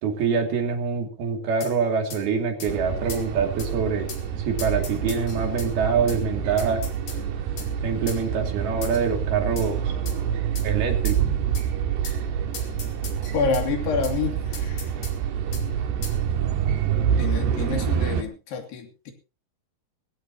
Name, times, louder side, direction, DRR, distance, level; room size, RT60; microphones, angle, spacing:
voice 1, 0.0-4.1 4.5-6.8 7.8-9.8 10.6-11.2, right 5 dB, 70° right, 3 dB, 4.7 m, -25 dB
sound 1, 1.6-1.8 2.1-2.2 2.6-2.7 3.1-3.3 3.6-3.7 4.1-4.2 4.6-5.7 6.1-6.2 6.6-7.2 7.6-7.7 8.1-8.2 8.8-9.1 9.6-9.7 10.1-10.2 10.6-10.7 11.1-11.2 11.6-11.7 12.0-12.2 12.5-13.7 14.0-14.2 14.5-15.2 15.5-15.7 16.0-16.2, left 6 dB, 50° left, 3.8 m, -39 dB
sound 2, 2.7-18.2, right 8 dB, 90° right, 3.7 m, -27 dB
voice 2, 13.3-15.0 17.2-19.1, left 5 dB, 80° left, 4 dB, 4.9 m, -28 dB
19.5 x 16.5 x 3.0 m, 0.33 s
omnidirectional pair, 4.6 m